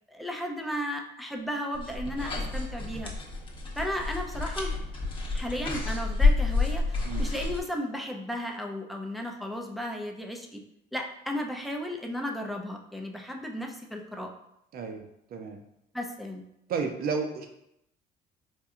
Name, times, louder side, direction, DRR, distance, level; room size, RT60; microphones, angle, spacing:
voice 1, 0.1-3.1 3.8-4.7 5.3-10.6 10.9-14.3 15.9-16.5, equal, ahead, 1 dB, 0.5 m, -34 dB
sound 1, 1.7-7.6, left 3 dB, 30° left, 0.8 m, -29 dB
voice 2, 14.7-15.0 15.3-15.6 16.7-17.5, right 5 dB, 55° right, 4 dB, 0.6 m, -32 dB
4.3 x 2.6 x 2.4 m, 0.80 s
cardioid pair, 105°, 18 cm